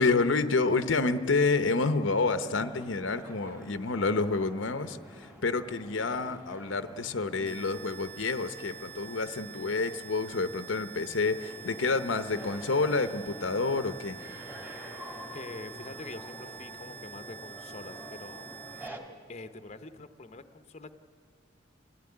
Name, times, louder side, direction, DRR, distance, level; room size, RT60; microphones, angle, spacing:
voice 1, 0.0-14.2, left 3 dB, 80° left, 10 dB, 0.8 m, -28 dB
sound 1, 2.2-19.0, equal, 10° right, 2.4 m, -48 dB
sound 2, 7.5-18.9, right 8 dB, 55° right, 0.7 m, -47 dB
voice 2, 15.3-18.5 19.3-20.9, left 3 dB, 35° left, 9 dB, 0.8 m, -45 dB
25.0 x 16.0 x 9.8 m, 2.1 s
head